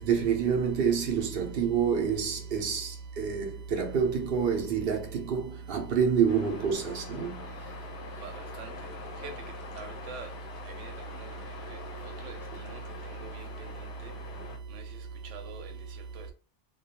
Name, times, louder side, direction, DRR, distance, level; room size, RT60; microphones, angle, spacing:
voice 1, 0.0-7.4, right 7 dB, 60° right, 0.7 m, -28 dB
sound 1, 6.3-14.6, left 5 dB, 55° left, 0.7 m, -45 dB
voice 2, 9.8-10.3 10.8-10.9 12.2-12.4 13.2-13.4 14.7-14.8 15.3-15.7 16.2-16.3, right 5 dB, 80° right, 0.9 m, -40 dB
2.3 x 2.2 x 2.8 m
omnidirectional pair, 1.2 m